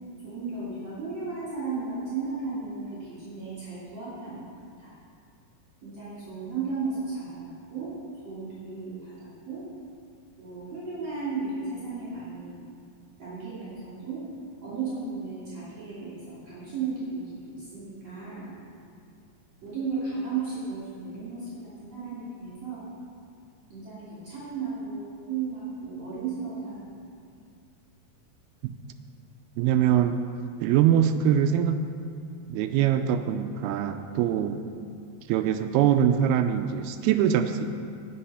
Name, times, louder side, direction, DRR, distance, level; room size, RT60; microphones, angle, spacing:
voice 1, 0.2-4.4 4.8-4.9 5.8-7.9 8.2-9.6 10.4-12.6 13.2-14.2 14.6-18.5 19.6-21.4 21.8-22.9 23.7-26.9, right 4 dB, 45° right, -10 dB, 3.9 m, -35 dB
voice 2, 29.6-30.2 30.6-31.8 32.5-34.6 35.3-37.7, right 9 dB, 85° right, 8 dB, 2.5 m, -23 dB
18.5 x 6.4 x 5.6 m, 2.3 s
omnidirectional pair, 4.5 m